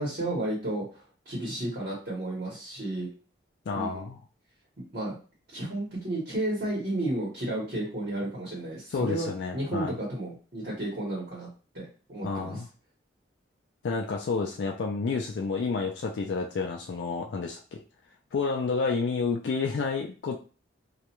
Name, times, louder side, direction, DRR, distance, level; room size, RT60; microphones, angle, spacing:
voice 1, 0.0-3.1 3.7-4.1 4.9-5.1 5.5-11.5 11.7-12.6, right 1 dB, 55° right, -5 dB, 1.0 m, -32 dB
voice 2, 3.7-4.2 8.9-9.9 12.2-12.7 13.8-17.8 18.3-20.4, left 4 dB, 65° left, 1 dB, 0.3 m, -30 dB
2.3 x 2.1 x 2.9 m, 0.36 s
head